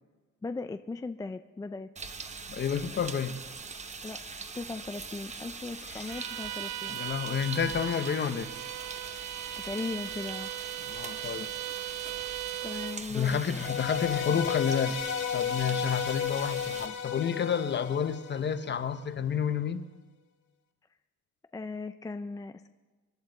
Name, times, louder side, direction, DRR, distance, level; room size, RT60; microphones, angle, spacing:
voice 1, 0.4-1.9 4.0-4.2 4.5-7.0 9.6-10.5 12.6-13.6 21.5-22.7, left 3 dB, 15° left, 9 dB, 0.3 m, -38 dB
sound 1, 2.0-16.9, right 4 dB, 25° right, 0.9 m, -42 dB
voice 2, 2.5-3.4 5.9-6.1 6.9-8.5 10.9-11.5 13.1-15.0 15.3-19.8, left 7 dB, 40° left, 11 dB, 0.8 m, -30 dB
Bowed string instrument, 6.1-13.1, right 14 dB, 70° right, 0.5 m, -38 dB
sound 2, 13.5-18.8, left 8 dB, 75° left, 1.1 m, -33 dB
25.5 x 11.0 x 4.0 m, 1.3 s
cardioid pair, 135°, 29 cm